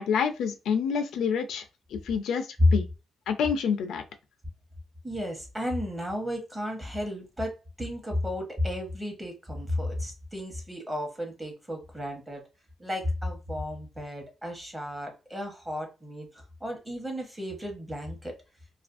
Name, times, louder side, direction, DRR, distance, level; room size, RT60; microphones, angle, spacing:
voice 1, 0.0-1.6 1.9-2.9 3.3-4.0, left 6 dB, 90° left, 0.4 m, -28 dB
voice 2, 5.0-12.5 12.8-18.3, left 1 dB, 15° right, 0.9 m, -32 dB
2.5 x 2.4 x 2.4 m
cardioid pair, 125°, 0 cm